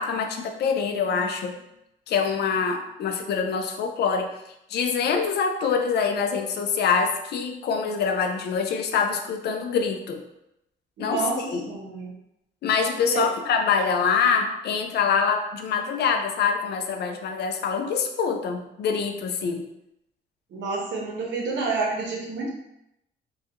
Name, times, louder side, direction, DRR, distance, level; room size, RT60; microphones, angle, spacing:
voice 1, 0.0-1.5 2.1-4.4 4.7-10.2 11.0-11.7 12.6-19.7, left 6 dB, 60° left, 5 dB, 0.4 m, -25 dB
voice 2, 11.0-12.1 13.1-13.3 20.5-22.5, right 4 dB, 70° right, -2 dB, 0.8 m, -29 dB
2.3 x 2.2 x 2.8 m, 0.83 s
cardioid pair, 90°, 20 cm